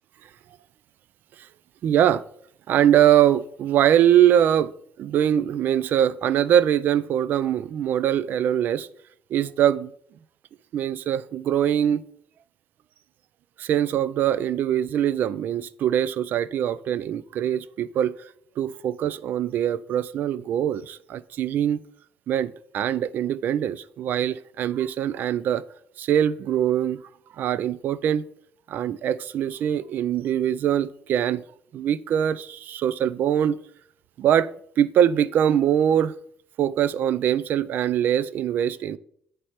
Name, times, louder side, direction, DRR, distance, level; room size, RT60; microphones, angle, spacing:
voice 1, 1.8-2.2 2.7-4.7 5.0-8.9 9.3-9.9 10.7-12.0 13.6-18.2 18.6-21.8 22.3-25.6 26.0-27.0 27.3-28.2 28.7-31.4 31.7-33.6 34.2-34.5 34.8-36.1 36.6-39.0, right 10 dB, 60° right, 0.3 m, -22 dB
9.0 x 3.3 x 4.2 m
cardioid pair, 140°, 4 cm